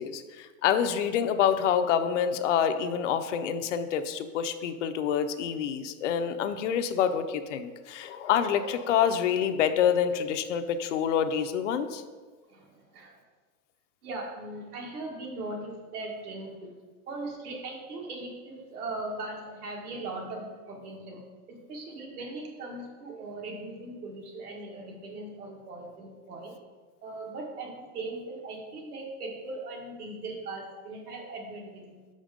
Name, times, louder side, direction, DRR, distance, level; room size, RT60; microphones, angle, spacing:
voice 1, 0.0-12.0, left 8 dB, 55° left, 9 dB, 0.5 m, -27 dB
voice 2, 12.5-13.2 14.0-16.7 17.1-21.2 21.5-26.5 27.0-32.0, right 2 dB, 70° right, -1 dB, 2.0 m, -39 dB
5.6 x 5.1 x 5.1 m, 1.4 s
supercardioid pair, 150°, 47 cm